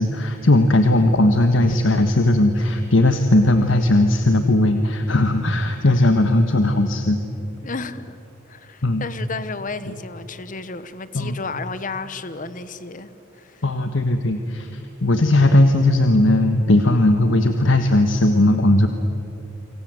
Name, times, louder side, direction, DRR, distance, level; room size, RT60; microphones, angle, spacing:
voice 1, 0.0-7.2 8.8-9.0 11.1-11.3 13.6-18.9, left 1 dB, 75° left, 7 dB, 1.5 m, -17 dB
voice 2, 7.6-8.2 8.5-13.1 13.4-13.6, left 3 dB, 40° left, 13 dB, 1.1 m, -32 dB
28.5 x 26.5 x 7.7 m, 2.9 s
head